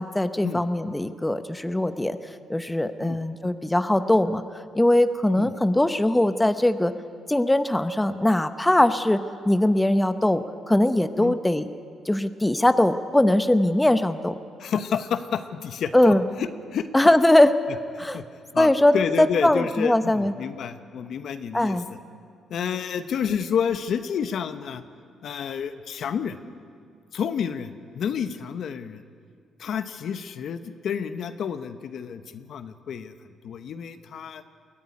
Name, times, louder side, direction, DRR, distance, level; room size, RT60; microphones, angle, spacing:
voice 1, 0.0-6.9 7.3-11.7 12.1-14.4 15.9-16.2 16.9-17.5 18.0-18.2 18.6-20.3 21.5-21.9, left 1 dB, 10° left, 10 dB, 0.9 m, -21 dB
voice 2, 14.6-16.9 18.0-18.2 18.5-22.0 22.5-24.8 25.2-26.4 27.1-29.0 29.6-33.1 33.4-34.4, left 7 dB, 65° left, 10 dB, 1.0 m, -30 dB
22.0 x 13.5 x 9.8 m, 2.2 s
cardioid pair, 90°, 0 cm